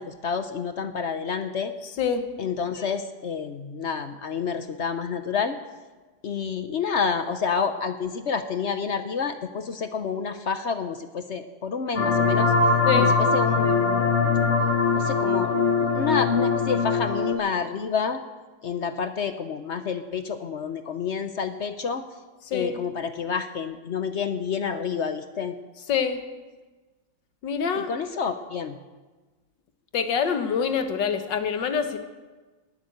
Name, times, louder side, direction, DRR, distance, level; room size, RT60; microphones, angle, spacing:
voice 1, 0.0-1.7 2.4-5.6 6.2-12.5 13.0-14.1 14.9-18.2 18.6-22.0 22.5-25.6 27.8-28.8, left 6 dB, 60° left, 9 dB, 0.7 m, -29 dB
voice 2, 2.0-2.3 12.8-13.2 22.5-22.8 25.9-26.2 27.4-27.9 29.9-32.0, left 7 dB, 75° left, 8 dB, 1.8 m, -25 dB
sound 1, 11.9-17.3, left 4 dB, 45° left, 1.6 m, -22 dB
19.0 x 8.2 x 7.9 m, 1.3 s
omnidirectional pair, 2.0 m